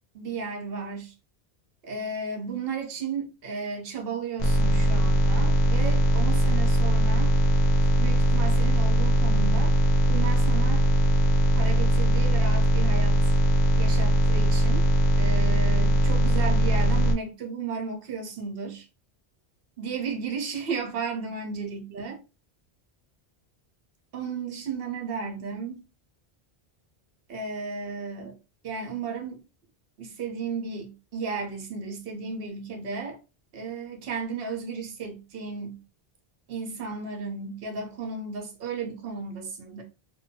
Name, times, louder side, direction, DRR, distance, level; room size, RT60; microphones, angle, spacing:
voice 1, 0.1-1.1 1.8-7.3 8.0-9.8 10.1-10.9 11.5-13.2 13.8-14.9 15.2-18.9 19.8-22.2 24.1-25.8 27.3-28.4 28.6-29.5 30.0-33.2 33.5-35.8 36.5-39.8, right 5 dB, 65° right, 0.9 m, -34 dB
sound 1, 4.4-17.1, right 1 dB, 55° left, 0.5 m, -21 dB
2.7 x 2.2 x 2.7 m
omnidirectional pair, 1.1 m